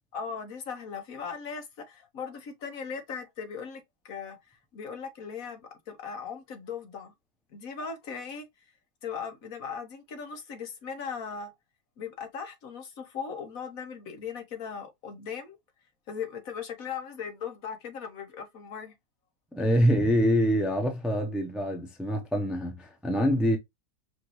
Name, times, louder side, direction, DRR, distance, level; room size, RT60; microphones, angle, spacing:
voice 1, 0.1-7.1 7.5-8.5 9.0-11.5 12.0-15.6 16.1-18.9, left 6 dB, 60° left, 1.4 m, -38 dB
voice 2, 19.5-23.6, equal, ahead, 0.3 m, -25 dB
5.0 x 2.6 x 3.1 m
omnidirectional pair, 1.8 m